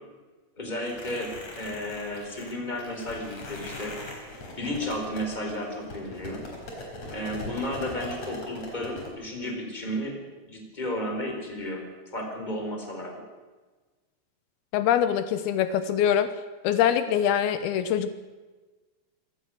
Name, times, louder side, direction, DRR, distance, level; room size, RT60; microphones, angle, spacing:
voice 1, 0.6-4.0 4.6-6.4 7.1-11.8 12.1-13.2, left 1 dB, 10° left, 2 dB, 4.1 m, -33 dB
sound 1, 0.8-9.1, left 1 dB, 45° left, 5.3 m, -41 dB
voice 2, 14.7-16.3 16.6-18.1, left 9 dB, 80° left, 11 dB, 2.9 m, -24 dB
26.5 x 16.5 x 6.4 m, 1.3 s
omnidirectional pair, 4.4 m